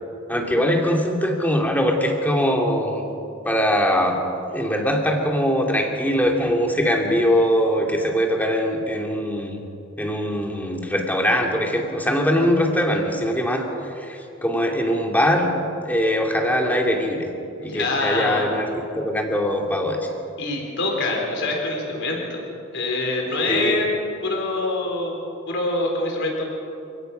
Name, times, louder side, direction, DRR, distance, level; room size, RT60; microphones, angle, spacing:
voice 1, 0.3-3.1 3.4-9.6 10.0-13.7 14.0-15.5 15.8-17.3 17.6-18.7 18.9-20.0 23.5-23.8, equal, 10° left, 1 dB, 2.4 m, -22 dB
voice 2, 17.5-18.5 20.4-22.4 22.7-23.9 24.2-25.2 25.5-26.4, left 2 dB, 60° left, 0 dB, 4.4 m, -25 dB
28.5 x 17.0 x 5.6 m, 2.7 s
head